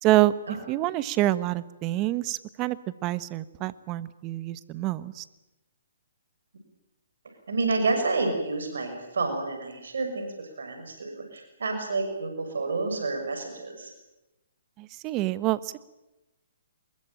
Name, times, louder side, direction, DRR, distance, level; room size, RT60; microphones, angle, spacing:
voice 1, 0.0-0.3 0.7-5.2 14.8-15.8, right 16 dB, 30° right, 16 dB, 1.1 m, -26 dB
voice 2, 7.5-13.9, right 3 dB, 80° right, 4 dB, 6.3 m, -29 dB
23.5 x 21.5 x 9.0 m, 0.95 s
hypercardioid pair, 145°, 0 cm